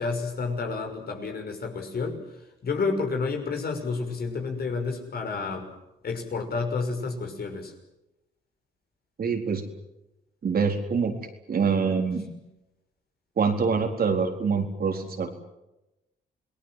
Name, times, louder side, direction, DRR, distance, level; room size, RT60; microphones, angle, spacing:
voice 1, 0.0-2.2 2.6-5.7 6.0-7.7, left 4 dB, 50° left, 4 dB, 6.2 m, -30 dB
voice 2, 9.2-9.6 10.4-11.1 11.5-12.3 13.4-15.4, right 5 dB, 50° right, 3 dB, 4.2 m, -25 dB
28.5 x 19.5 x 7.7 m, 0.94 s
cardioid pair, 90°, 20 cm